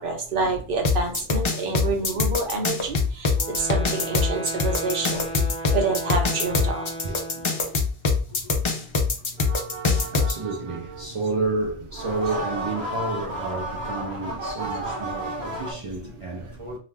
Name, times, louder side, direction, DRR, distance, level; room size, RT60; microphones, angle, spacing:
voice 1, 0.0-5.3 5.7-6.9, right 3 dB, 65° right, 0.9 m, -27 dB
sound 1, 0.8-10.3, left 4 dB, 50° left, 0.3 m, -23 dB
voice 2, 1.2-1.5 5.3-5.4 6.6-6.7 7.0-7.8 8.3-8.6 10.1-16.8, right 3 dB, 45° right, 0.4 m, -31 dB
sound 2, 3.3-7.9, right 2 dB, 5° left, 0.6 m, -35 dB
sound 3, 9.4-11.2 11.9-15.7, right 1 dB, 90° right, 1.0 m, -33 dB
2.4 x 2.3 x 3.3 m
omnidirectional pair, 1.0 m